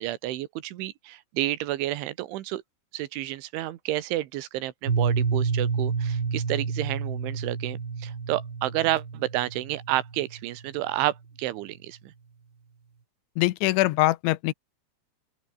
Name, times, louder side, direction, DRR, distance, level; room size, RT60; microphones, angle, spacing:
voice 1, 0.0-2.6 2.9-12.1, right 15 dB, 85° right, 3.7 m, -30 dB
Piano, 4.9-10.5, right 5 dB, 30° right, 2.3 m, -29 dB
voice 2, 13.4-14.5, left 18 dB, 85° left, 3.2 m, -23 dB
open air
omnidirectional pair, 5.4 m